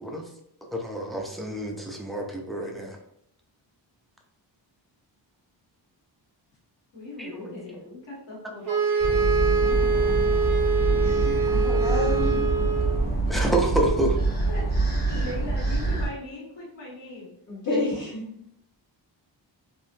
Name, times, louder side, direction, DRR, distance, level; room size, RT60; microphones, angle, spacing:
voice 1, 0.7-3.0 7.2-7.6 8.7-8.8 13.3-14.2, right 1 dB, ahead, 1 dB, 0.3 m, -28 dB
voice 2, 6.9-8.7 9.6-10.4 14.5-17.3, left 2 dB, 70° left, -7 dB, 1.3 m, -39 dB
sound 1, 8.7-13.1, right 5 dB, 80° right, 0.7 m, -24 dB
sound 2, 9.0-16.1, right 2 dB, 20° left, 0.8 m, -25 dB
voice 3, 11.4-12.4 17.5-18.2, left 2 dB, 40° left, -9 dB, 1.1 m, -29 dB
3.4 x 2.6 x 2.6 m, 0.74 s
wide cardioid pair, 165°, 45 cm